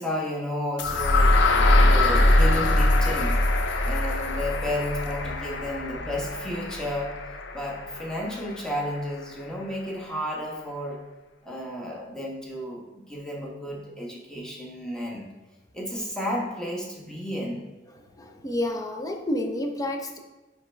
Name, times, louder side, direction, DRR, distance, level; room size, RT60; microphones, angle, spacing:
voice 1, 0.0-1.4 1.7-3.4 3.8-7.2 7.5-11.0 11.4-15.3 15.7-17.7, left 1 dB, 5° left, -2 dB, 1.0 m, -32 dB
sound 1, 0.8-8.7, left 1 dB, 70° left, 0.6 m, -22 dB
voice 2, 18.2-20.2, left 1 dB, 20° left, 3 dB, 0.6 m, -29 dB
9.6 x 3.4 x 3.3 m, 1.1 s
head